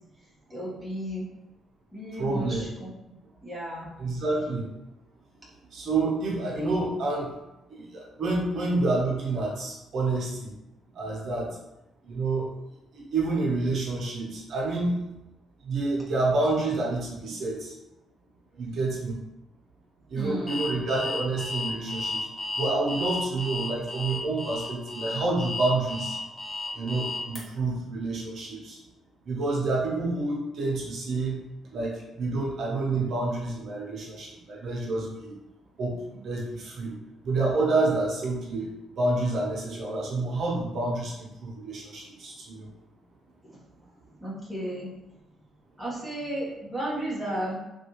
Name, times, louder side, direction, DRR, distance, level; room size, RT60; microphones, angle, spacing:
voice 1, 0.5-1.3 1.9-2.9 3.4-3.9 20.1-20.6 44.2-44.9 45.8-47.6, right 1 dB, 5° left, -7 dB, 1.3 m, -33 dB
voice 2, 2.1-2.6 4.0-4.7 5.7-7.3 7.7-10.5 11.0-11.5 12.1-12.5 12.9-14.9 15.6-17.7 18.6-19.1 20.1-22.3 22.6-26.2 26.7-28.8 29.3-31.4 31.7-35.4 35.8-36.9 37.2-38.7 39.0-42.6, right 2 dB, 65° right, -3 dB, 0.8 m, -28 dB
Alarm, 20.5-27.4, left 3 dB, 25° left, 1.0 m, -33 dB
3.3 x 2.6 x 3.0 m, 0.94 s
cardioid pair, 90°, 0 cm